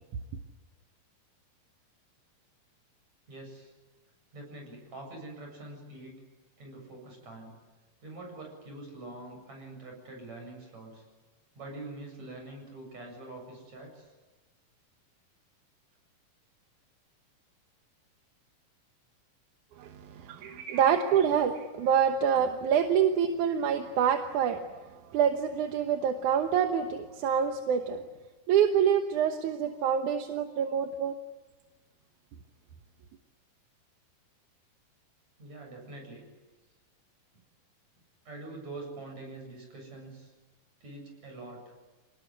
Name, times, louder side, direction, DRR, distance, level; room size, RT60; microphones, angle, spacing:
voice 1, 3.3-3.7 4.3-6.1 6.6-7.6 8.0-11.0 11.6-14.1 20.3-21.3 35.4-36.2 38.3-40.3 40.8-41.7, right 2 dB, 50° right, 1 dB, 8.9 m, -45 dB
voice 2, 19.8-28.0 28.5-31.2, right 8 dB, 70° right, 6 dB, 2.5 m, -26 dB
27.5 x 19.5 x 9.8 m, 1.2 s
omnidirectional pair, 3.9 m